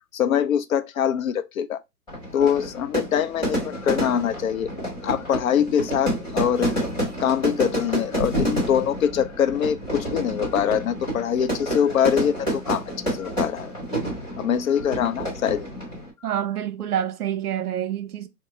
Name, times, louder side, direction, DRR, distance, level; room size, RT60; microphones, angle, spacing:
voice 1, 0.1-1.8 2.3-4.7 5.0-6.7 7.2-12.8 13.1-13.7 14.4-15.7, left 9 dB, 60° left, 0.6 m, -23 dB
Fire / Fireworks, 2.1-16.1, right 1 dB, 10° left, 1.5 m, -29 dB
voice 2, 16.2-18.3, right 10 dB, 70° right, 0.8 m, -27 dB
3.7 x 2.2 x 4.1 m
hypercardioid pair, 165°, 47 cm